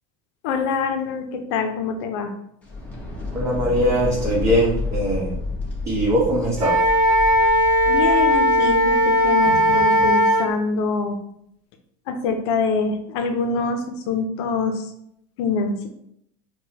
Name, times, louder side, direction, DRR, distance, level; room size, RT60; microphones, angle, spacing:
voice 1, 0.4-2.3 7.9-11.2 12.1-14.9 15.4-15.9, left 4 dB, 70° left, 5 dB, 0.7 m, -25 dB
sound 1, 2.6-10.2, left 2 dB, 10° left, 1.3 m, -31 dB
voice 2, 3.3-5.4 5.8-6.8, equal, 20° right, -7 dB, 1.1 m, -21 dB
Wind instrument woodwind instrument, 6.6-10.5, equal, 65° right, 0.7 m, -17 dB
4.6 x 2.3 x 2.9 m, 0.73 s
supercardioid pair, 120°, 15 cm